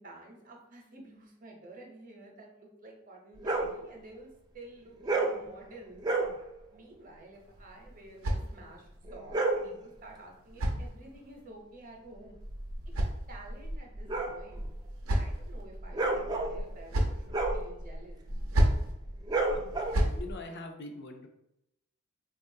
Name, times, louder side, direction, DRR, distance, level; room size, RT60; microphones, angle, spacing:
voice 1, 0.0-4.3 4.5-6.0 6.7-12.4 13.3-14.7 15.1-18.2, right 2 dB, 40° right, 0 dB, 0.7 m, -51 dB
sound 1, 3.4-3.8 5.0-5.4 6.0-6.4 9.0-9.7 12.3-20.3, right 2 dB, 20° right, 0.3 m, -32 dB
sound 2, 7.3-9.0 10.0-11.4 12.4-13.7 14.6-15.6 16.5-17.3 18.3-18.9 19.7-20.2, right 1 dB, 85° right, 0.6 m, -32 dB
voice 2, 20.1-21.3, left 2 dB, 55° left, 5 dB, 0.5 m, -42 dB
3.6 x 2.4 x 2.7 m, 0.83 s
head